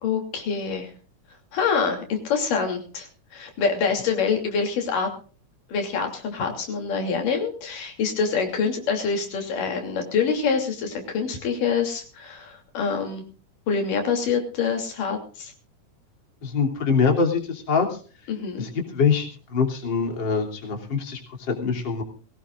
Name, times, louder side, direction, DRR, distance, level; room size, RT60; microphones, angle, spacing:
voice 1, 0.0-0.9 1.5-5.1 5.7-13.2 13.7-15.5 18.3-18.7, left 5 dB, 90° left, 3 dB, 4.6 m, -26 dB
voice 2, 16.4-17.9 18.6-21.2 21.6-22.0, left 5 dB, 35° left, 1 dB, 3.5 m, -24 dB
21.5 x 18.0 x 2.5 m, 0.39 s
omnidirectional pair, 3.7 m